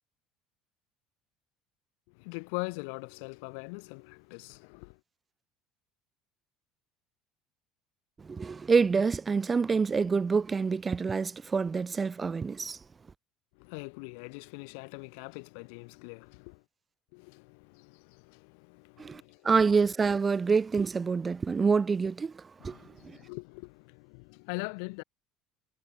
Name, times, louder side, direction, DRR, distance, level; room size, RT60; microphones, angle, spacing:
voice 1, 2.1-5.0 13.5-16.6 17.1-19.5 22.6-25.0, left 37 dB, 90° left, 1.7 m, -42 dB
voice 2, 8.2-12.8 19.0-22.8 23.0-23.2, right 5 dB, 15° right, 0.5 m, -27 dB
cardioid pair, 175°, 0 cm